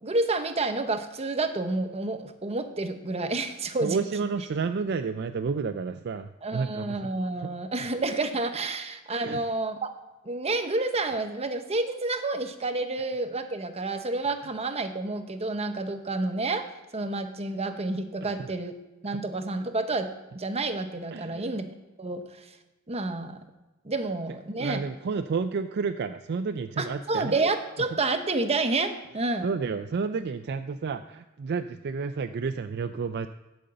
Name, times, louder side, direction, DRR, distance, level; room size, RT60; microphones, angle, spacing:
voice 1, 0.0-4.0 6.4-9.9 10.2-16.7 16.9-18.7 19.0-20.1 20.3-21.7 22.0-22.2 22.9-23.4 23.8-24.8 26.8-29.5, right 3 dB, 30° right, 8 dB, 0.8 m, -29 dB
voice 2, 3.8-7.5 7.8-7.9 9.2-9.5 18.2-18.5 19.0-19.2 21.1-21.6 24.6-27.4 27.9-28.0 29.4-33.3, right 5 dB, 50° right, 10 dB, 0.4 m, -31 dB
11.0 x 5.2 x 7.7 m, 1.1 s
head